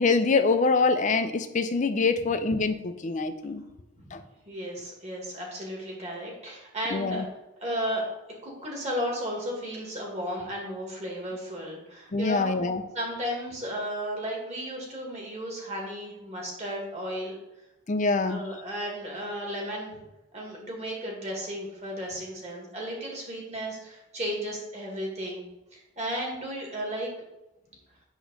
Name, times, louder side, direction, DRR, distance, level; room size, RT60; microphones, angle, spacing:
voice 1, 0.0-3.6 4.1-4.2 6.9-7.3 12.1-12.8 17.9-18.4, left 4 dB, 35° left, 9 dB, 0.5 m, -25 dB
voice 2, 4.5-7.2 7.6-8.0 8.4-12.6 12.9-17.3 18.3-20.0 20.3-25.4 25.7-27.1, equal, 30° right, -2 dB, 1.9 m, -34 dB
8.1 x 3.1 x 6.3 m, 0.98 s
head